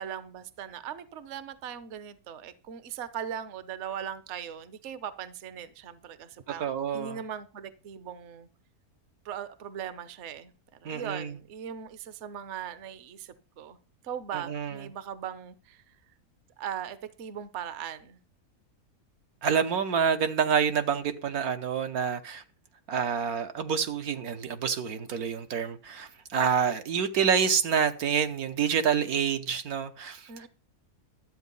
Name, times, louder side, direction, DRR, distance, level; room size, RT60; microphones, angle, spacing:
voice 1, 0.0-8.5 9.2-13.8 14.0-16.0 16.6-18.2 30.3-30.5, right 9 dB, 55° right, 1.1 m, -39 dB
voice 2, 6.6-7.2 10.8-11.3 14.3-14.8 19.4-22.4 22.9-30.5, right 7 dB, 75° right, 1.5 m, -27 dB
12.5 x 8.3 x 5.4 m
omnidirectional pair, 1.6 m